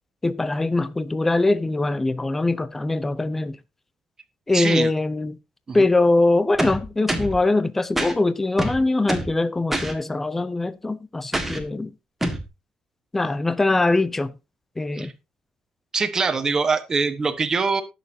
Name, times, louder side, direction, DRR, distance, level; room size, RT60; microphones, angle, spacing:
voice 1, 0.2-3.6 4.5-5.4 5.7-11.9 13.1-14.3 14.8-15.1, left 2 dB, 15° left, 0.7 m, -22 dB
voice 2, 4.5-4.9 5.7-5.9 15.0-15.1 15.9-17.8, right 4 dB, 25° right, 1.3 m, -23 dB
sound 1, 6.6-7.4 8.0-8.1 8.6-9.4 9.7-9.9 11.3-11.7 12.2-12.5, right 1 dB, 10° right, 1.7 m, -26 dB
19.0 x 6.7 x 2.8 m
cardioid pair, 150°, 2 cm